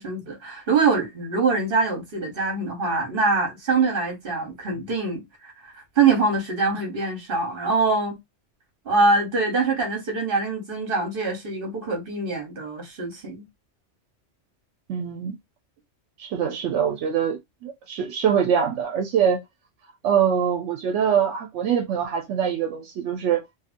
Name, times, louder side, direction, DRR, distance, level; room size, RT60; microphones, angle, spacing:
voice 1, 0.0-8.2 8.8-13.4, right 4 dB, 50° right, 1.2 m, -24 dB
voice 2, 14.9-15.4 16.2-19.4 20.0-23.4, right 8 dB, 80° right, 0.9 m, -23 dB
2.6 x 2.6 x 2.5 m
omnidirectional pair, 1.2 m